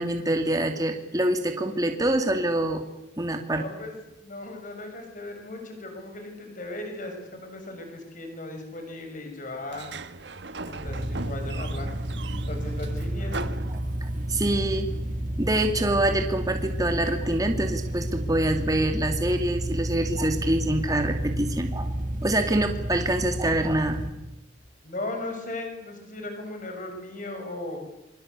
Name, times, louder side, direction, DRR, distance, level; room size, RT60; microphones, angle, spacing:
voice 1, 0.0-2.8 3.2-3.7 14.0-14.9 15.4-21.9 22.2-24.0, right 1 dB, 20° right, 5 dB, 2.5 m, -25 dB
voice 2, 3.4-4.0 4.2-9.9 10.6-12.0 12.3-13.5 24.8-27.8, left 2 dB, 45° left, 4 dB, 6.6 m, -37 dB
Sliding door, 9.7-14.4, right 3 dB, 65° right, 1.4 m, -38 dB
sound 1, 10.9-24.1, right 1 dB, 45° right, 3.1 m, -31 dB
27.5 x 25.0 x 8.4 m, 0.90 s
head